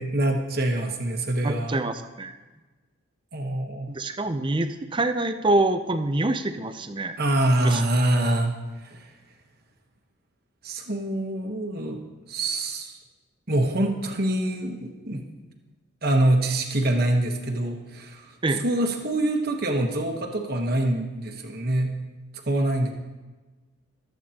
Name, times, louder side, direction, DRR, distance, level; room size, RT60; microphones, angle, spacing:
voice 1, 0.0-1.8 3.3-3.9 7.2-8.6 8.8-9.1 10.6-12.0 12.3-13.0 13.5-15.2 16.0-18.3 18.6-21.9 22.5-22.9, right 1 dB, 45° right, 2 dB, 1.1 m, -25 dB
voice 2, 1.4-2.3 3.9-7.2 7.6-7.8 18.4-18.6, right 2 dB, 25° right, 9 dB, 0.5 m, -26 dB
19.5 x 8.3 x 2.9 m, 1.2 s
head